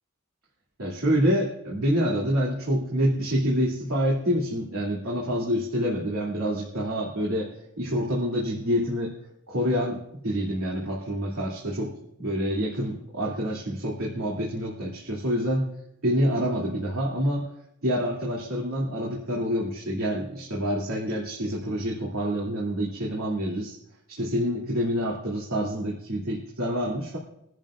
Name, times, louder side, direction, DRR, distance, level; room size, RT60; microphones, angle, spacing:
voice 1, 0.8-7.5 7.8-9.1 9.5-11.9 12.2-15.7 16.0-17.5 17.8-23.8 24.1-27.2, equal, 75° right, -4 dB, 2.6 m, -27 dB
23.0 x 10.5 x 2.5 m, 0.79 s
head